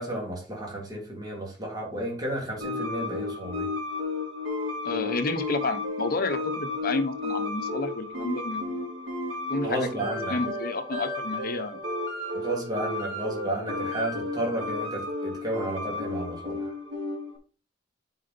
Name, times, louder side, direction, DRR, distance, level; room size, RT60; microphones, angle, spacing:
voice 1, 0.0-3.7 9.6-10.4 12.3-16.7, right 1 dB, 20° right, 3.1 m, -32 dB
sound 1, 2.6-17.4, left 2 dB, 80° right, 3.0 m, -33 dB
voice 2, 4.8-8.8 9.5-11.8, left 3 dB, 55° left, 1.0 m, -30 dB
8.2 x 4.9 x 4.3 m
head